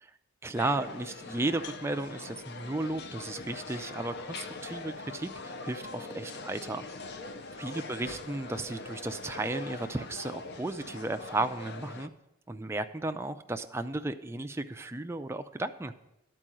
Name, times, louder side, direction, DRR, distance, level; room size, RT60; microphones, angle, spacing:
voice 1, 0.4-7.2 7.6-12.1 12.5-15.9, right 2 dB, 10° right, 7 dB, 0.3 m, -34 dB
sound 1, 0.5-12.1, left 3 dB, 50° left, 0.5 m, -42 dB
11.0 x 4.6 x 7.5 m, 0.89 s
head